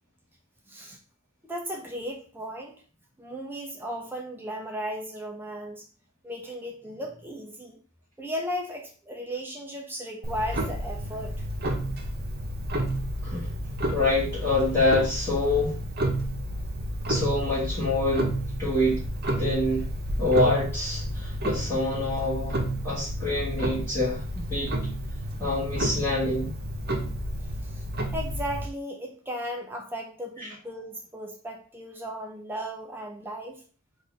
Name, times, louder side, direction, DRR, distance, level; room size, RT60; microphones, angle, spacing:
voice 1, 1.4-2.8 3.2-5.8 6.2-7.8 8.2-11.3 27.7-27.8 28.1-33.6, equal, 10° right, 1 dB, 0.6 m, -35 dB
Clock, 10.2-28.7, right 1 dB, 50° right, 0.9 m, -31 dB
voice 2, 13.9-15.8 17.1-18.3 18.6-19.0 19.4-19.9 20.2-24.2 24.5-24.7 25.4-26.5, left 2 dB, 10° left, -10 dB, 1.7 m, -26 dB
4.2 x 2.6 x 4.9 m, 0.41 s
head